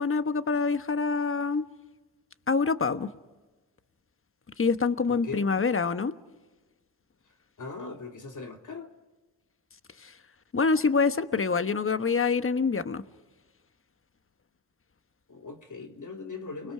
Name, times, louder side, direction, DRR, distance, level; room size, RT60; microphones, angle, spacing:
voice 1, 0.0-1.7 2.5-3.1 4.6-6.1 10.0-10.1 10.5-13.0, left 4 dB, 30° left, 1.2 m, -26 dB
voice 2, 5.1-5.5 7.6-8.9 15.3-16.7, left 4 dB, 50° left, 2.8 m, -39 dB
29.5 x 21.5 x 4.9 m
supercardioid pair, 45°, 40 cm